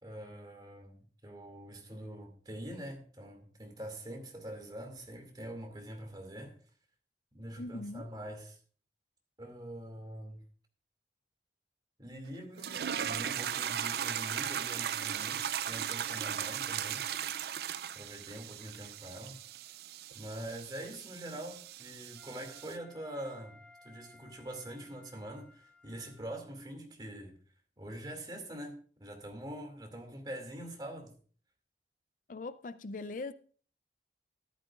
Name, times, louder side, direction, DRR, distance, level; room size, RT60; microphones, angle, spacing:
voice 1, 0.0-1.0 1.2-6.5 7.3-8.6 9.4-10.4 12.0-17.1 17.9-19.4 20.1-27.4 27.8-28.7 29.0-31.1, right 1 dB, 25° right, 2.4 m, -44 dB
voice 2, 7.6-8.1 32.3-33.3, left 3 dB, 45° left, 0.4 m, -40 dB
sound 1, 12.6-22.8, right 9 dB, 60° right, 0.4 m, -37 dB
Wind instrument woodwind instrument, 22.1-26.4, left 2 dB, 5° left, 2.3 m, -60 dB
13.5 x 12.0 x 2.4 m
head